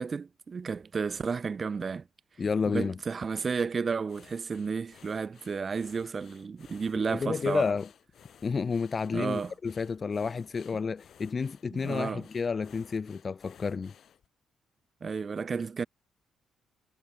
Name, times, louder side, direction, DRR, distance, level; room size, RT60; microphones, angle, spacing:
voice 1, 0.0-2.0 2.7-7.7 9.1-9.5 11.7-12.2 15.0-15.9, right 5 dB, 40° right, 0.6 m, -32 dB
voice 2, 2.4-3.0 7.1-7.9 8.4-13.9, left 5 dB, 35° left, 0.5 m, -30 dB
sound 1, 4.1-14.3, left 9 dB, 60° left, 2.7 m, -57 dB
cardioid pair, 90°, 0 cm